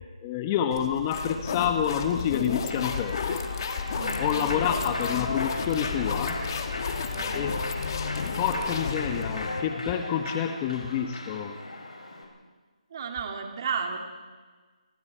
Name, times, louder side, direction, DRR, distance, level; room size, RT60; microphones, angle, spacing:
voice 1, 0.2-3.4 4.2-6.4 7.3-7.6 8.4-11.6, left 8 dB, 20° left, 7 dB, 1.2 m, -28 dB
sound 1, 0.7-9.5, left 6 dB, 35° left, 2.1 m, -33 dB
Human voice / Clapping / Cheering, 2.5-12.2, left 2 dB, 85° left, 6.9 m, -37 dB
sound 2, 3.9-9.6, left 4 dB, 55° left, 2.9 m, -37 dB
voice 2, 3.9-5.0 7.2-7.5 12.9-14.0, right 5 dB, 35° right, 3 dB, 3.1 m, -34 dB
29.5 x 25.0 x 4.6 m, 1.4 s
figure-of-eight pair, 160°, 4 cm